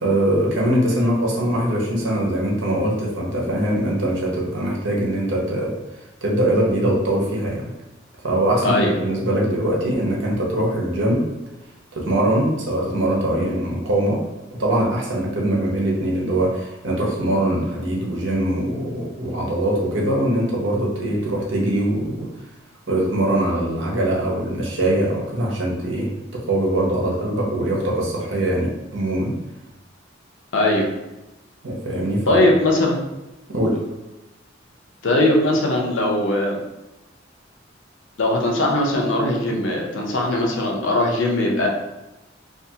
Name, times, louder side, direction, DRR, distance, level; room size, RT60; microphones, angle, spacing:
voice 1, 0.0-5.7 6.2-7.7 8.2-11.2 11.9-14.2 14.6-22.3 22.9-29.4 31.6-32.4 33.5-33.8, right 1 dB, 85° right, -3 dB, 0.8 m, -22 dB
voice 2, 8.6-8.9 30.5-30.9 32.3-33.0 35.0-36.6 38.2-41.7, left 1 dB, 80° left, 0 dB, 0.6 m, -20 dB
2.5 x 2.4 x 2.7 m, 0.99 s
head